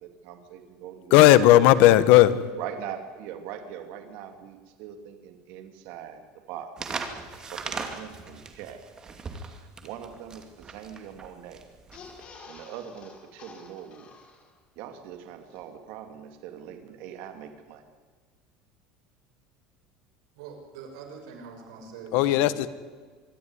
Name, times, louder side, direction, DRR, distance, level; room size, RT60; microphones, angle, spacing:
voice 1, 0.0-1.2 1.6-1.7 2.5-6.2 6.5-7.0 7.2-8.8 9.5-11.6 12.5-14.2 14.8-17.8, right 9 dB, 65° right, 6 dB, 2.4 m, -41 dB
voice 2, 1.1-2.5 22.1-22.7, left 14 dB, 65° left, 15 dB, 1.2 m, -16 dB
sound 1, 6.8-12.2, right 4 dB, 20° right, 2.5 m, -38 dB
sound 2, 11.8-14.8 15.1-15.2 15.5-15.6, left 4 dB, 35° left, 5.8 m, -49 dB
voice 3, 20.4-22.7, right 5 dB, 90° right, 2 dB, 5.9 m, -43 dB
25.0 x 13.0 x 9.7 m, 1.5 s
cardioid pair, 145°, 3 cm